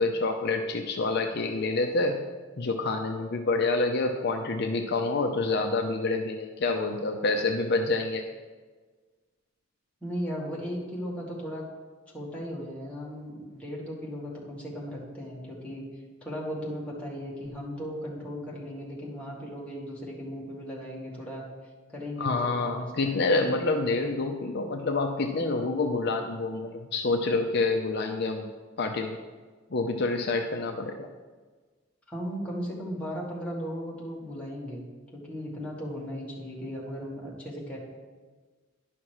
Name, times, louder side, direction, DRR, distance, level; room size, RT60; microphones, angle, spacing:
voice 1, 0.0-2.2 2.6-8.2 22.2-28.5 28.8-29.2 29.7-31.1, left 3 dB, 55° left, 4 dB, 0.6 m, -27 dB
voice 2, 10.0-11.7 12.1-15.8 16.2-21.4 21.9-22.9 32.1-34.8 35.1-37.8, equal, 5° left, -6 dB, 2.1 m, -36 dB
11.0 x 5.7 x 4.8 m, 1.4 s
head